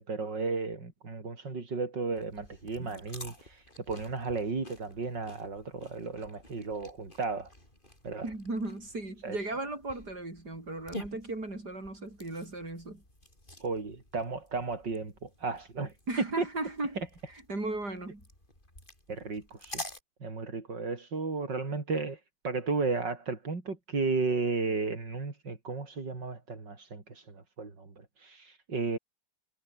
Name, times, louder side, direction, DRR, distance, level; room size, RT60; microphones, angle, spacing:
voice 1, 0.0-7.5 8.0-8.3 9.2-9.4 13.6-16.4 19.1-19.8 20.2-29.0, right 4 dB, 80° right, 4.5 m, -34 dB
sound 1, 2.2-20.0, left 1 dB, 25° left, 8.0 m, -50 dB
voice 2, 8.2-13.0 16.1-17.0 17.5-18.2, right 2 dB, 65° right, 7.8 m, -36 dB
omnidirectional pair, 1.9 m